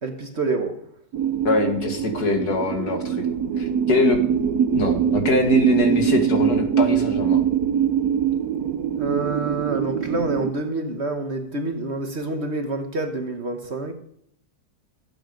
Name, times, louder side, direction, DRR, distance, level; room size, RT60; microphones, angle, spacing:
voice 1, 0.0-0.8 9.0-13.9, right 2 dB, 45° right, 1.3 m, -27 dB
sound 1, 1.1-10.5, right 8 dB, 70° right, 1.2 m, -23 dB
voice 2, 1.4-3.2 3.6-4.2 4.7-7.4, left 3 dB, 70° left, 2.6 m, -23 dB
18.0 x 8.6 x 5.2 m
omnidirectional pair, 1.8 m